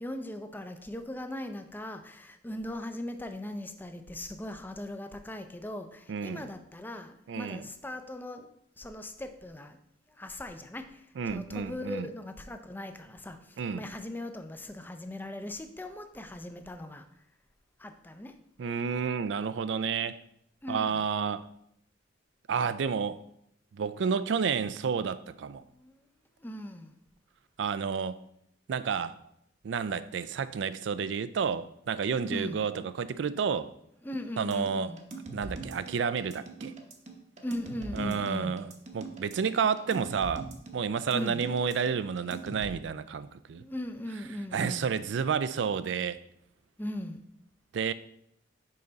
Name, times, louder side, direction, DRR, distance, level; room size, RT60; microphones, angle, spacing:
voice 1, 0.0-8.5 8.8-9.8 10.2-11.1 11.3-17.1 17.8-18.4 20.6-21.0 25.6-26.0 26.4-26.9 32.3-32.6 34.0-35.0 37.4-38.6 41.1-41.4 43.5-44.9 46.8-47.2, left 1 dB, 10° left, 0.5 m, -39 dB
voice 2, 6.1-6.5 7.3-7.7 11.2-12.1 13.6-13.9 18.6-20.2 20.7-21.4 22.5-23.2 23.7-25.6 27.6-28.2 28.7-29.2 29.6-33.7 34.4-34.9 35.3-36.7 37.9-38.7 38.9-40.5 40.7-43.6 44.5-46.2 47.7-47.9, right 6 dB, 70° right, 0.4 m, -30 dB
sound 1, 34.5-42.7, right 3 dB, 40° right, 0.8 m, -42 dB
5.5 x 5.2 x 3.9 m
head